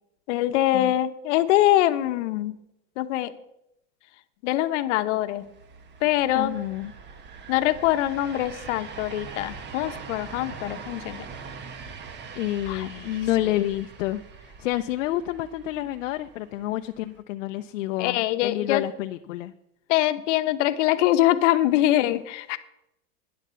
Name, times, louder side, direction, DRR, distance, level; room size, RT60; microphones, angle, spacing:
voice 1, 0.3-2.6 3.0-3.3 4.4-5.5 6.0-6.6 7.5-11.3 12.7-13.0 18.0-18.8 19.9-22.6, left 14 dB, 65° left, 11 dB, 1.1 m, -23 dB
sound 1, 5.3-17.2, right 5 dB, 30° right, 1.2 m, -43 dB
voice 2, 6.3-6.9 12.3-19.5 21.8-22.2, left 14 dB, 80° left, 6 dB, 0.8 m, -29 dB
12.0 x 9.9 x 6.9 m, 0.85 s
supercardioid pair, 135°, 38 cm